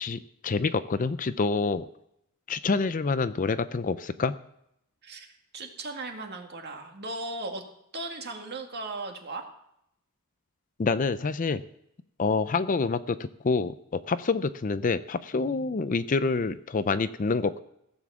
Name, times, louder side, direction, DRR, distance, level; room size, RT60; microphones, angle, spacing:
voice 1, 0.0-1.9 2.5-4.3 10.8-11.6 12.2-17.6, left 4 dB, 35° left, 13 dB, 0.5 m, -27 dB
voice 2, 5.5-7.6 7.9-9.5, right 2 dB, 50° right, 3 dB, 1.9 m, -37 dB
16.0 x 7.2 x 7.2 m, 0.77 s
head